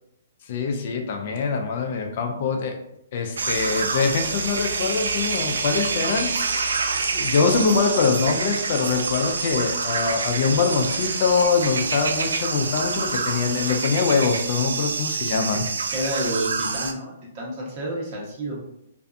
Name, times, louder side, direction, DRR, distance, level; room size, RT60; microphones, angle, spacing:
voice 1, 0.5-2.8 3.1-6.7 7.0-15.7, left 5 dB, 50° left, 3 dB, 0.4 m, -23 dB
sound 1, 3.4-16.9, right 4 dB, 80° right, 0.3 m, -27 dB
voice 2, 15.9-18.6, right 1 dB, 40° right, -3 dB, 1.0 m, -30 dB
2.6 x 2.2 x 2.5 m, 0.79 s
hypercardioid pair, 140°, 0 cm